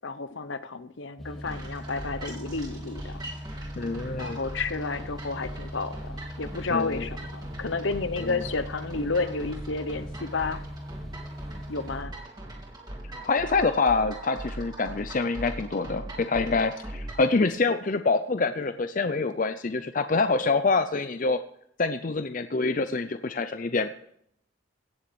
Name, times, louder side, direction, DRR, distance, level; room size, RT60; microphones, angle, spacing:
voice 1, 0.0-3.3 4.2-10.6 11.7-12.1, left 3 dB, 65° left, 12 dB, 0.9 m, -31 dB
sound 1, 1.2-12.0, equal, ahead, 1.6 m, -40 dB
sound 2, 1.4-17.3, right 1 dB, 20° right, 3.2 m, -41 dB
voice 2, 3.8-4.4 6.7-7.1 8.2-8.4 13.3-21.4 21.8-24.1, left 3 dB, 40° left, 9 dB, 0.5 m, -26 dB
17.0 x 7.2 x 6.9 m, 0.70 s
head